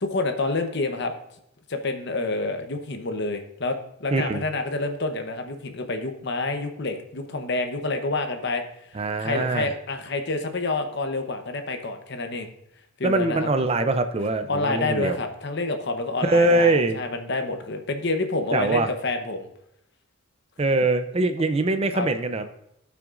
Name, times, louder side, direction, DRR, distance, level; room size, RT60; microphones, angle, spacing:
voice 1, 0.0-1.1 1.7-8.6 8.9-12.5 13.0-13.5 14.5-19.5 21.9-22.1, left 2 dB, 55° left, 6 dB, 0.9 m, -28 dB
voice 2, 4.1-4.4 8.9-9.7 13.0-15.2 16.2-17.0 18.5-18.9 20.6-22.4, right 2 dB, 30° right, 8 dB, 0.5 m, -23 dB
16.0 x 5.9 x 2.5 m, 0.78 s
head